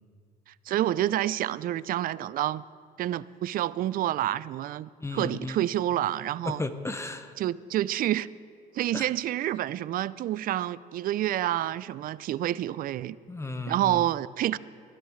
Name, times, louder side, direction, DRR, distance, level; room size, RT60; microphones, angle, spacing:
voice 1, 0.7-2.6 3.0-6.6 7.4-8.3 8.7-13.2 13.7-14.6, right 13 dB, 55° right, 0.4 m, -28 dB
voice 2, 5.0-5.6 6.4-7.3 8.9-9.1 13.3-14.1, left 2 dB, 15° left, 0.9 m, -34 dB
21.5 x 13.0 x 3.2 m
supercardioid pair, 75°, 17 cm